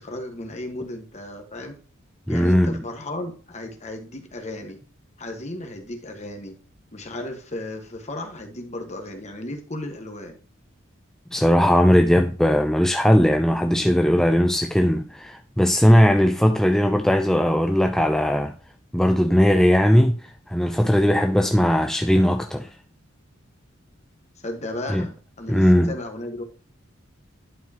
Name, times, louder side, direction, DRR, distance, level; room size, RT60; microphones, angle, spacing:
voice 1, 0.0-1.8 2.3-4.8 5.2-6.5 6.9-10.4 24.3-26.4, left 1 dB, 35° left, 1.5 m, -34 dB
voice 2, 2.3-2.8 11.3-18.5 18.9-22.7 24.9-25.0 25.5-25.9, equal, ahead, 0.4 m, -18 dB
11.0 x 4.7 x 2.9 m
head